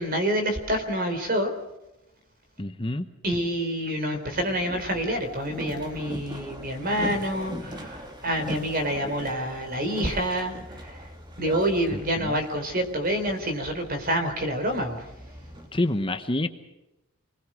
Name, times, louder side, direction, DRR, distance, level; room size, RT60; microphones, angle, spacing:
voice 1, 0.0-1.5 3.2-11.0 11.4-15.1, equal, 40° right, 7 dB, 3.8 m, -27 dB
voice 2, 2.6-3.1 11.9-12.4 15.7-16.5, left 1 dB, 25° left, 9 dB, 0.9 m, -28 dB
Boat Water vehicle, 4.3-15.7, equal, 20° right, 2.4 m, -40 dB
27.0 x 20.5 x 6.3 m, 0.93 s
head